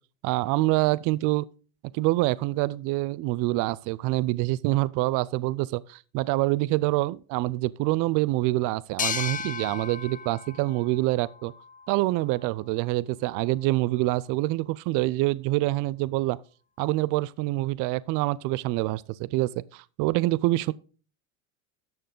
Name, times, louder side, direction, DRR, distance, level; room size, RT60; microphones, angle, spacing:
voice 1, 0.2-1.4 1.9-11.5 11.9-16.4 16.8-20.7, right 19 dB, 50° right, 0.5 m, -26 dB
sound 1, 9.0-12.4, left 7 dB, 20° left, 0.5 m, -35 dB
12.0 x 6.8 x 3.8 m
supercardioid pair, 105°, 41 cm